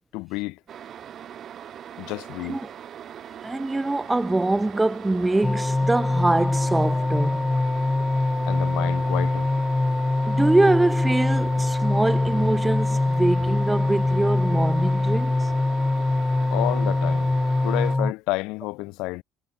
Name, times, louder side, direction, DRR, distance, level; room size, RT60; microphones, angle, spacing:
voice 1, 0.1-0.6 2.0-2.6 8.5-9.5 16.5-17.3 17.6-19.2, left 23 dB, 70° left, 3.2 m, -30 dB
sound 1, 0.7-18.0, right 9 dB, 50° right, 3.7 m, -41 dB
voice 2, 3.4-7.5 10.2-15.5, right 2 dB, 15° right, 1.2 m, -24 dB
sound 2, 5.4-18.1, left 2 dB, 15° left, 0.6 m, -23 dB
hypercardioid pair, 55°, 0 cm